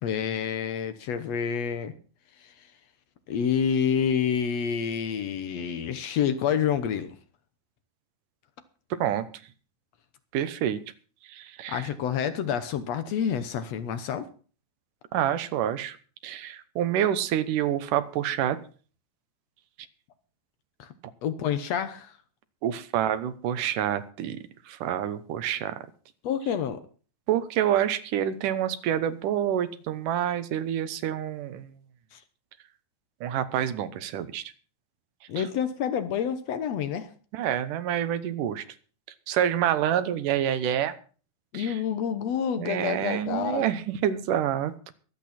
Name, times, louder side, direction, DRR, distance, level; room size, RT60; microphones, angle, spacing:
voice 1, 0.0-1.9 3.3-7.1 11.7-14.3 20.8-20.9 21.2-22.1 26.2-26.8 32.1-32.2 35.3-37.1 41.5-43.6, left 8 dB, 65° left, 11 dB, 2.0 m, -28 dB
voice 2, 10.3-10.8 11.3-11.9 15.1-16.0 16.2-18.6 22.6-24.4 24.7-25.8 27.3-31.7 33.2-34.4 35.4-35.5 37.3-38.6 39.3-40.9 41.5-41.8 42.6-44.9, right 10 dB, 90° right, 12 dB, 2.7 m, -27 dB
23.0 x 8.4 x 4.3 m, 0.39 s
omnidirectional pair, 3.6 m